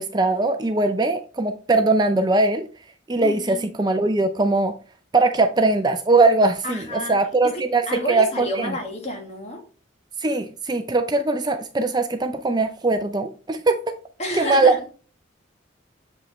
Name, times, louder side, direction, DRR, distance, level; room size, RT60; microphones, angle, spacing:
voice 1, 0.0-2.7 3.1-4.8 5.1-8.7 10.2-13.8 14.4-14.7, right 3 dB, 20° right, 0.5 m, -20 dB
voice 2, 3.2-3.7 6.6-7.2 7.4-9.6 14.2-14.8, left 1 dB, 35° left, 2.1 m, -30 dB
7.1 x 5.4 x 3.1 m
head